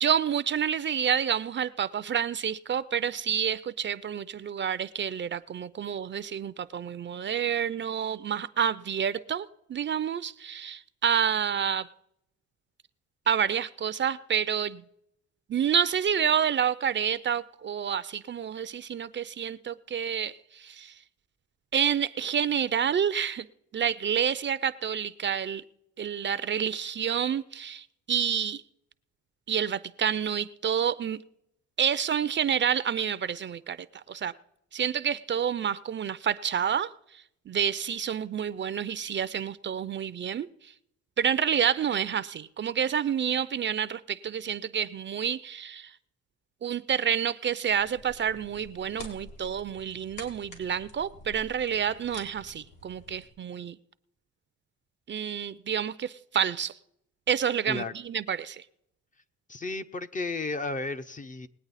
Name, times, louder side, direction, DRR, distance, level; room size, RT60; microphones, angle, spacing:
voice 1, 0.0-11.9 13.3-14.8 15.5-20.9 21.7-23.5 23.7-25.6 26.0-28.6 29.5-31.2 31.8-34.3 34.7-36.9 37.5-40.7 41.2-45.9 46.6-53.8 55.1-56.8 57.3-58.6, right 8 dB, 40° right, 0.5 m, -28 dB
Fire cracking outdoor at night, 47.8-53.3, left 2 dB, 85° left, 3.2 m, -48 dB
voice 2, 59.5-61.5, left 3 dB, 25° left, 0.6 m, -33 dB
20.5 x 8.6 x 4.1 m
cardioid pair, 90°, 30 cm